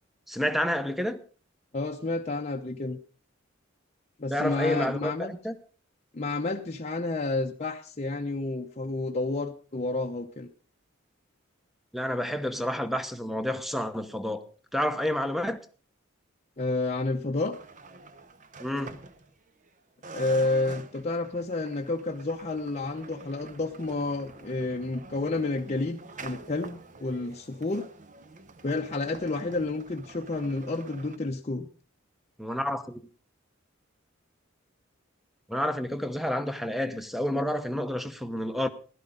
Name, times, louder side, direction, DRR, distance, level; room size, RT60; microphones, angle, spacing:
voice 1, 0.3-1.2 4.3-5.6 11.9-14.4 14.7-15.6 18.6-19.0 32.4-33.0 35.5-38.7, left 1 dB, ahead, 0.9 m, -29 dB
voice 2, 1.7-3.0 4.2-5.3 6.1-10.5 16.6-17.6 20.1-27.9 28.6-31.7, left 2 dB, 35° left, 0.8 m, -30 dB
sound 1, 17.5-19.7 20.0-31.2, right 3 dB, 40° right, 0.9 m, -47 dB
15.5 x 12.0 x 3.8 m
head